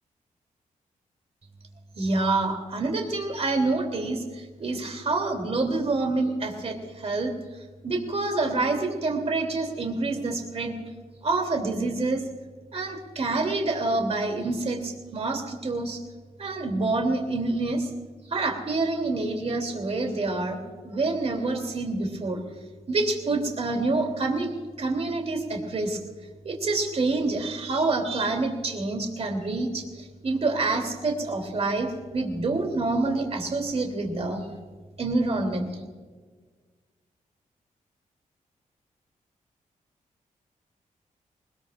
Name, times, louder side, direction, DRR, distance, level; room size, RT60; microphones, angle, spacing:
voice 1, 2.0-7.4 7.8-10.8 11.2-12.2 12.7-16.0 16.4-17.9 18.3-22.4 22.9-24.5 24.8-26.0 26.4-34.5 35.0-35.7, right 3 dB, 45° right, 3 dB, 3.0 m, -27 dB
21.0 x 20.5 x 2.5 m, 1.5 s
cardioid pair, 80°, 14 cm